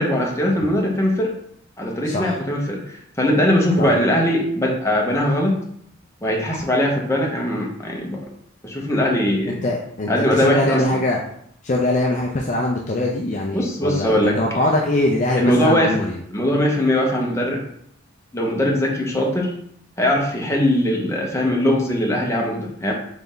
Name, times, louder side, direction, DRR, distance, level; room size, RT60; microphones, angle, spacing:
voice 1, 0.0-1.3 1.8-5.6 6.2-8.3 8.6-9.6 10.1-11.0 13.5-14.4 15.4-15.9 16.3-17.6 18.3-19.5 20.0-22.9, equal, 15° left, -1 dB, 0.8 m, -20 dB
voice 2, 2.0-2.4 3.8-3.9 9.5-11.2 11.6-16.2, left 1 dB, 35° left, -1 dB, 0.5 m, -22 dB
4.1 x 3.4 x 3.8 m, 0.68 s
head